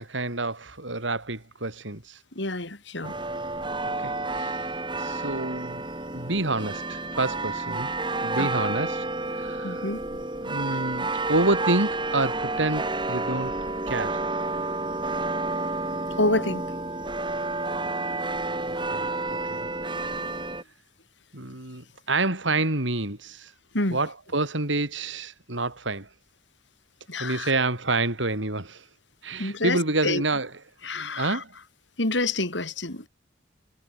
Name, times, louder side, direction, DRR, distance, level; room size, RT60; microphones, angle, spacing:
voice 1, 0.0-2.2 4.0-5.9 6.1-7.9 8.2-9.1 9.3-9.9 10.4-13.5 13.9-14.2 18.6-19.7 21.3-23.5 23.9-26.1 27.2-28.8 29.2-30.5 31.0-31.5, right 2 dB, 80° right, 4.3 m, -28 dB
voice 2, 2.3-3.1 8.4-8.7 9.6-10.0 16.2-16.6 23.7-24.0 27.1-27.5 29.4-30.2 30.8-31.4 32.0-33.1, left 2 dB, 75° left, 4.7 m, -28 dB
sound 1, 3.0-20.6, right 2 dB, 25° right, 6.1 m, -30 dB
head